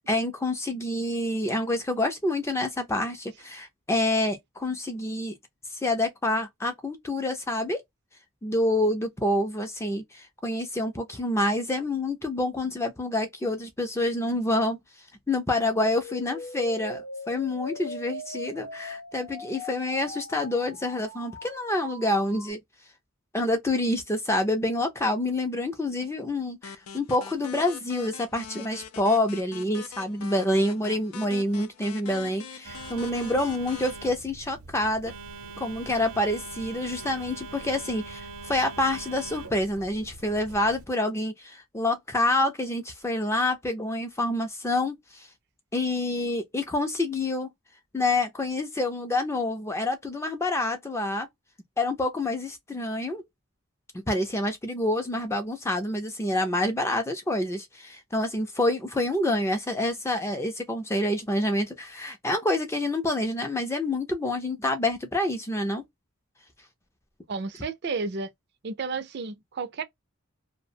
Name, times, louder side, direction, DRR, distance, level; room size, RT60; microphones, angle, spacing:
voice 1, 0.1-5.4 5.7-7.8 8.4-14.8 15.3-22.6 23.3-35.1 35.6-45.3 45.7-47.5 47.9-51.3 51.8-53.2 54.1-65.8, left 1 dB, 10° left, 0.4 m, -27 dB
sound 1, 15.5-22.5, left 1 dB, 55° left, 0.7 m, -40 dB
sound 2, 26.6-33.9, left 6 dB, 85° left, 0.5 m, -43 dB
Telephone, 32.6-40.9, right 4 dB, 85° right, 0.7 m, -42 dB
voice 2, 67.3-68.3 68.6-69.8, right 4 dB, 50° right, 0.4 m, -32 dB
2.4 x 2.1 x 2.6 m
head